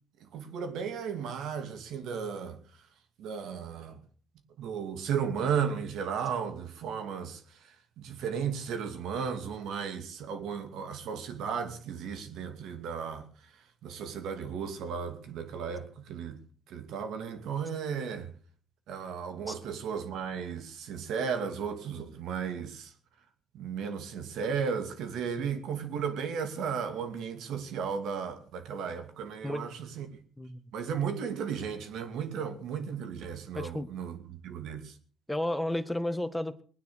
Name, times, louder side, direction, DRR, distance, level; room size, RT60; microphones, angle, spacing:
voice 1, 0.2-2.6 3.2-4.0 4.6-13.3 13.8-16.4 16.7-18.3 18.9-22.9 23.5-30.2 30.7-35.0, right 7 dB, 85° right, 2.5 m, -35 dB
voice 2, 33.5-33.9 35.3-36.6, left 1 dB, 5° left, 1.7 m, -32 dB
20.5 x 9.7 x 6.4 m
cardioid pair, 90°, 0 cm